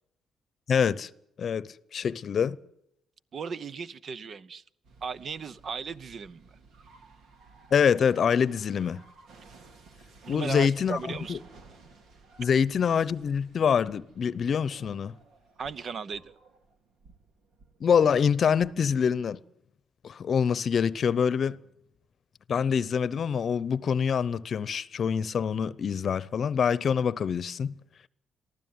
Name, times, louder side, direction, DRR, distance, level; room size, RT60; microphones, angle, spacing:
voice 1, 0.7-1.1 1.4-2.6 7.7-9.0 10.3-11.4 12.4-15.1 17.8-19.4 20.0-21.6 22.5-27.7, left 7 dB, 55° left, 0.8 m, -25 dB
voice 2, 3.3-4.6 5.0-6.5 10.2-11.4 15.6-16.3, right 6 dB, 50° right, 0.8 m, -36 dB
sound 1, 4.8-19.1, right 3 dB, 75° right, 2.7 m, -56 dB
23.0 x 15.0 x 9.5 m
cardioid pair, 90°, 0 cm